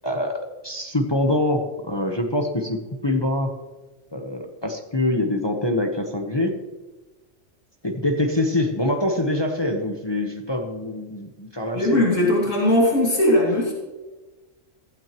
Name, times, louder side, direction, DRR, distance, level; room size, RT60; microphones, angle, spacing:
voice 1, 0.0-3.5 4.1-6.6 7.8-12.0, left 1 dB, 20° left, 3 dB, 1.0 m, -24 dB
voice 2, 11.7-13.7, left 1 dB, 85° left, -3 dB, 3.1 m, -19 dB
15.5 x 15.0 x 3.1 m, 1.2 s
omnidirectional pair, 1.3 m